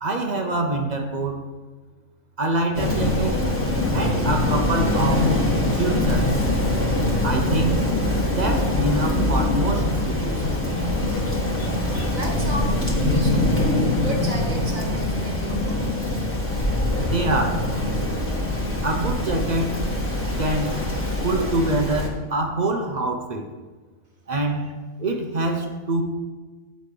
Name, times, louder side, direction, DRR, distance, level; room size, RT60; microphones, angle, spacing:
voice 1, 0.0-1.5 2.4-3.5 3.9-5.4 5.7-6.4 7.2-7.8 8.2-10.7 17.0-17.7 18.8-19.8 20.4-20.8 21.2-23.5 24.3-26.0, right 2 dB, 40° right, 4 dB, 0.7 m, -25 dB
Rain, 2.7-22.1, left 1 dB, 10° left, 1.4 m, -23 dB
voice 2, 11.2-13.7 14.0-16.0, right 1 dB, 70° right, 1 dB, 1.7 m, -34 dB
7.7 x 5.2 x 6.6 m, 1.3 s
omnidirectional pair, 1.5 m